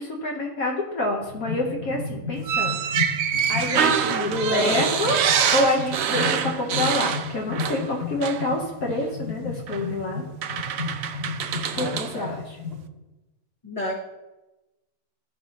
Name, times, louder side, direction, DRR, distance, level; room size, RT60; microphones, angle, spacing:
voice 1, 0.0-3.1 3.5-5.2 5.5-10.2 11.7-12.6, left 1 dB, 65° left, -1 dB, 1.4 m, -27 dB
sound 1, 1.2-12.8, left 4 dB, 40° left, 2.8 m, -34 dB
sound 2, 2.4-7.9 8.2-8.4 9.7-9.8 10.4-12.1, right 8 dB, 70° right, 0.6 m, -25 dB
voice 2, 4.5-4.9 11.8-12.4 13.6-13.9, equal, 20° left, -4 dB, 1.9 m, -31 dB
13.5 x 5.5 x 2.9 m, 1.0 s
omnidirectional pair, 1.7 m